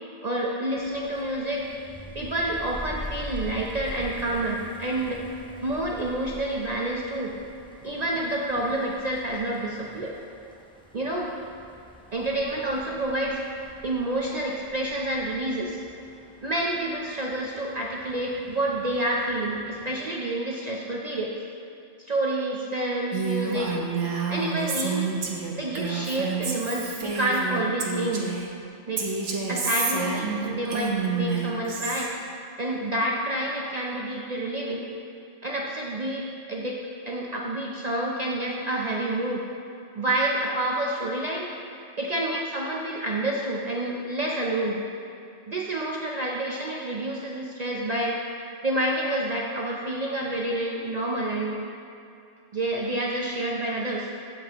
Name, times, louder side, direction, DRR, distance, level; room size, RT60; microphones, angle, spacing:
voice 1, 0.2-1.7 2.1-5.2 5.6-7.3 7.8-10.2 10.9-11.3 12.1-13.4 13.8-15.8 16.4-21.3 22.1-23.8 24.3-25.1 25.6-28.3 28.9-29.0 29.5-32.1 32.6-34.8 35.4-36.8 37.1-39.4 39.9-41.5 42.0-44.8 45.5-48.2 48.6-51.6 52.5-54.1, right 1 dB, 45° right, -2 dB, 0.6 m, -28 dB
sound 1, 0.8-20.0, equal, 5° left, 0.6 m, -45 dB
Female speech woman speaking, 23.1-28.5 29.0-32.1, right 5 dB, 90° right, 1.2 m, -29 dB
15.0 x 5.2 x 3.0 m, 2.6 s
omnidirectional pair, 1.2 m